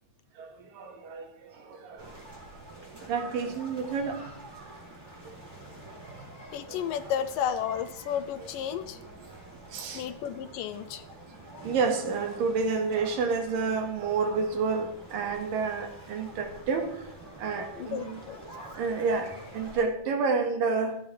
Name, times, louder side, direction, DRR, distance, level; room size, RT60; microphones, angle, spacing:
voice 1, 0.4-2.1 3.0-4.2 5.2-5.3 6.7-7.2 8.4-8.5 9.7-10.1 11.6-17.0 17.4-18.2 18.5-21.0, right 4 dB, 70° right, 3.4 m, -30 dB
sound 1, 2.0-19.8, right 1 dB, 5° right, 3.7 m, -47 dB
voice 2, 6.5-9.0 9.9-11.0 17.8-18.4, left 9 dB, 80° left, 2.1 m, -32 dB
16.5 x 15.0 x 3.4 m
omnidirectional pair, 4.2 m